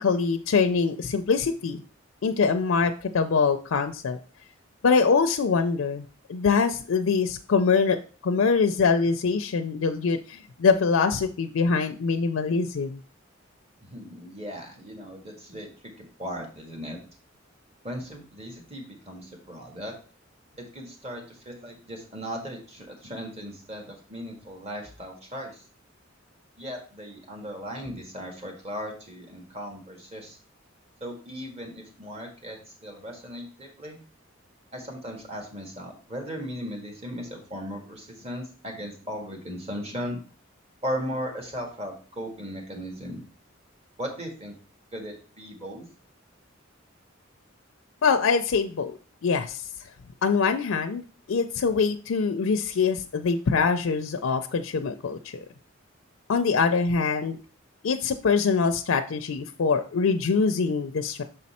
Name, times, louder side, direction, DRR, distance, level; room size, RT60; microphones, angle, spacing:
voice 1, 0.0-1.8 2.2-4.2 4.8-8.0 8.2-13.0 48.0-49.0 49.2-49.6 50.2-51.0 51.3-55.4 56.3-57.4 57.8-61.2, left 5 dB, 80° left, 7 dB, 0.4 m, -24 dB
voice 2, 13.8-17.0 17.8-19.9 20.6-25.6 26.6-30.4 31.0-34.0 34.7-40.2 40.8-43.2 44.0-44.5 44.9-45.9, equal, 30° right, 2 dB, 1.6 m, -37 dB
6.6 x 4.2 x 4.2 m, 0.38 s
head